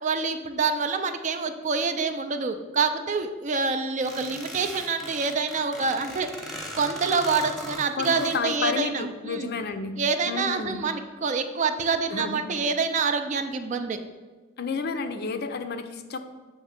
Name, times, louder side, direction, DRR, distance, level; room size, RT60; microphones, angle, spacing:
voice 1, 0.0-6.3 6.7-9.5 10.0-14.0, right 4 dB, 35° right, 7 dB, 0.4 m, -26 dB
sound 1, 4.0-8.4, equal, ahead, 0.9 m, -38 dB
voice 2, 7.9-10.0 10.3-10.8 12.1-12.6 14.6-16.2, left 4 dB, 50° left, 8 dB, 0.5 m, -31 dB
7.1 x 3.4 x 5.7 m, 1.3 s
head